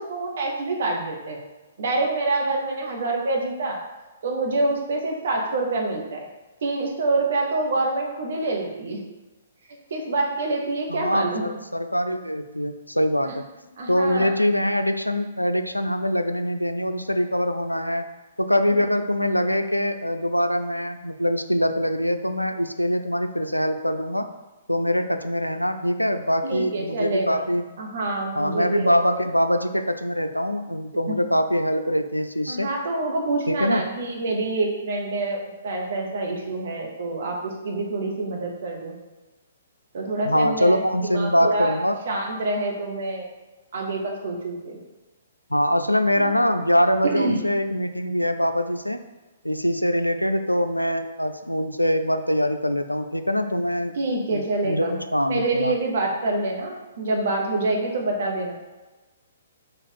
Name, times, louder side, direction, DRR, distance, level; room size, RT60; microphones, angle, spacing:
voice 1, 0.0-1.4 1.8-3.8 4.2-6.3 6.6-9.0 9.9-11.4 13.2-13.3 13.8-14.3 26.4-27.4 27.8-28.9 32.5-39.0 39.9-41.8 42.1-43.3 43.7-44.8 46.2-46.3 47.1-47.4 54.0-55.0 55.3-58.5, right 2 dB, 50° right, 0 dB, 0.9 m, -26 dB
voice 2, 10.9-13.4 13.9-18.1 18.4-24.3 24.7-27.7 28.4-32.7 33.5-33.8 40.2-42.0 45.5-49.0 49.4-53.9 54.3-55.7, equal, 90° left, 8 dB, 0.3 m, -23 dB
4.1 x 2.4 x 4.6 m, 1.2 s
figure-of-eight pair, 120°, 0 cm